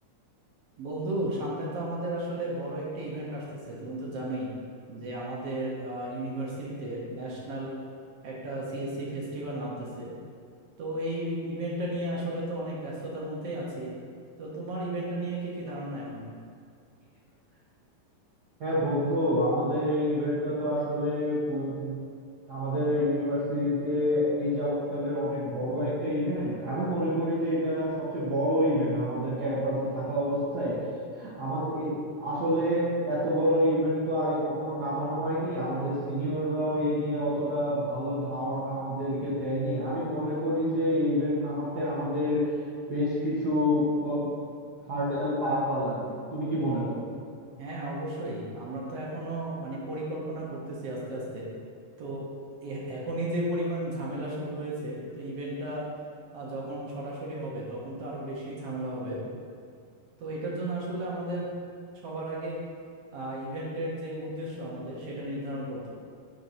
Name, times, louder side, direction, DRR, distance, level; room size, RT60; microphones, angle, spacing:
voice 1, 0.8-4.5 4.9-7.8 8.2-10.1 10.8-13.9 14.4-16.3 47.6-51.5 52.0-52.3 52.6-55.9 56.3-59.2 60.2-61.5 62.0-62.6 63.1-65.9, right 1 dB, 65° right, -5 dB, 1.7 m, -34 dB
voice 2, 18.6-22.0 22.5-30.8 31.1-42.4 42.9-44.3 44.9-47.0, equal, 85° right, -9 dB, 0.8 m, -28 dB
10.5 x 4.7 x 2.7 m, 2.2 s
omnidirectional pair, 3.7 m